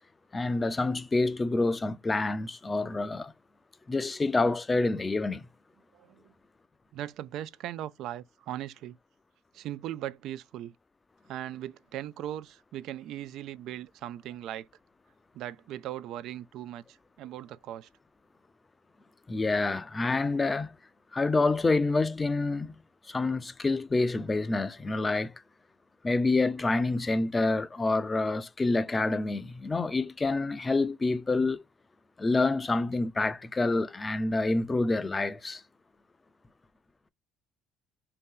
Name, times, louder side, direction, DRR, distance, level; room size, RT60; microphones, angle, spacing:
voice 1, 0.3-3.3 3.9-5.4 19.3-20.8 21.1-22.8 23.1-25.3 26.0-31.6 32.2-35.6, left 3 dB, 20° left, 0.4 m, -27 dB
voice 2, 5.9-6.3 6.9-9.0 9.5-10.8 11.3-14.7 15.3-17.9, right 12 dB, 65° right, 0.3 m, -39 dB
2.8 x 2.8 x 3.6 m
supercardioid pair, 85°, 0 cm